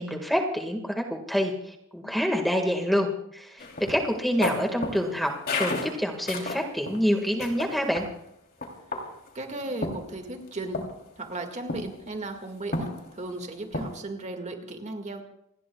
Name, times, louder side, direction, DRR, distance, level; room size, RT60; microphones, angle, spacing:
voice 1, 0.0-8.1, equal, ahead, 2 dB, 1.8 m, -27 dB
sound 1, 3.6-7.0 7.4-8.1 8.6-9.3 9.8-10.5 10.7-11.0 11.7-12.1 12.7-13.3 13.7-14.0, left 2 dB, 45° left, 3.2 m, -32 dB
voice 2, 9.3-10.9 11.2-15.3, right 2 dB, 35° right, 5 dB, 2.0 m, -36 dB
28.0 x 20.0 x 2.3 m, 0.77 s
head